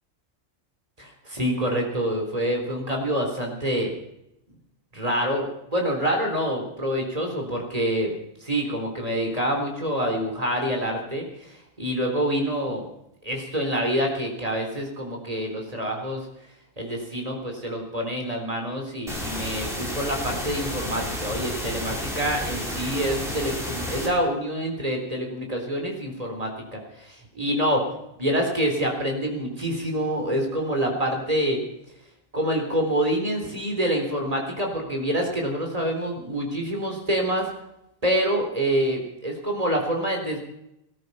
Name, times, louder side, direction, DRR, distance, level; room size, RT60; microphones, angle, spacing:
voice 1, 1.0-3.9 4.9-8.1 8.4-12.9 13.2-16.3 16.8-27.8 28.2-31.6 32.3-37.5 38.0-40.4, equal, 30° right, 1 dB, 4.0 m, -26 dB
sound 1, 19.1-24.1, equal, ahead, 4.6 m, -31 dB
19.0 x 13.5 x 5.7 m, 0.82 s
omnidirectional pair, 1.4 m